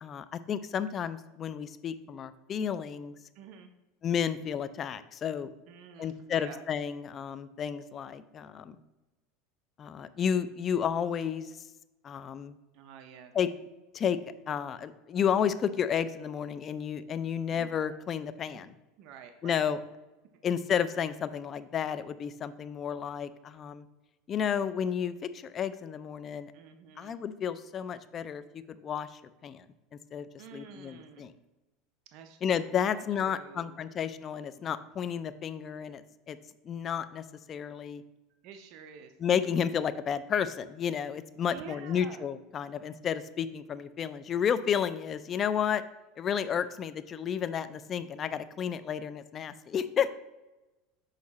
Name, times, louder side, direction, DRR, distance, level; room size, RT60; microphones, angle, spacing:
voice 1, 0.0-3.2 4.0-5.5 6.0-8.8 9.8-11.5 12.0-12.6 13.3-13.5 13.9-14.2 14.5-18.7 19.4-19.8 20.4-23.9 24.3-26.5 27.0-29.6 30.1-30.3 30.5-31.3 32.4-36.4 36.6-38.0 39.2-45.8 46.2-50.1, left 8 dB, 30° left, 13 dB, 0.4 m, -32 dB
voice 2, 3.3-3.7 5.7-6.6 12.7-13.3 17.5-17.7 18.5-18.6 19.0-19.6 26.5-27.2 30.4-31.3 32.1-32.4 32.8-33.9 38.3-39.1 41.5-42.3, right 7 dB, 55° right, 6 dB, 0.6 m, -49 dB
6.5 x 4.8 x 4.1 m, 1.1 s
supercardioid pair, 135°, 0 cm